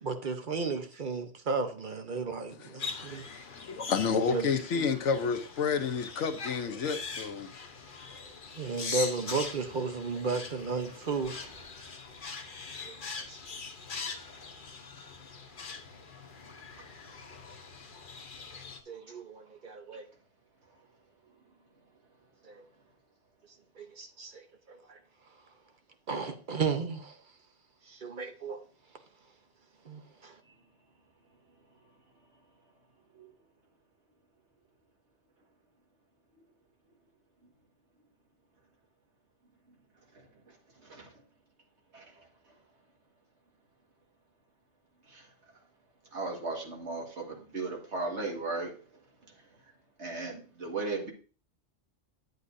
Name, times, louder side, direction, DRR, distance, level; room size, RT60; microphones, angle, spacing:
voice 1, 0.0-3.2 4.1-4.8 8.6-11.3 12.8-13.4 18.9-20.1 22.4-22.6 23.8-24.4 24.7-25.0 26.1-27.2 27.9-28.6 29.8-30.3, right 4 dB, 45° right, 1.0 m, -34 dB
voice 2, 2.6-7.5, left 6 dB, 80° left, 1.2 m, -31 dB
sound 1, 2.8-18.8, left 4 dB, 50° left, 1.0 m, -42 dB
voice 3, 46.1-48.7 50.0-51.1, right 3 dB, 70° right, 2.1 m, -36 dB
9.6 x 8.0 x 2.6 m
omnidirectional pair, 1.2 m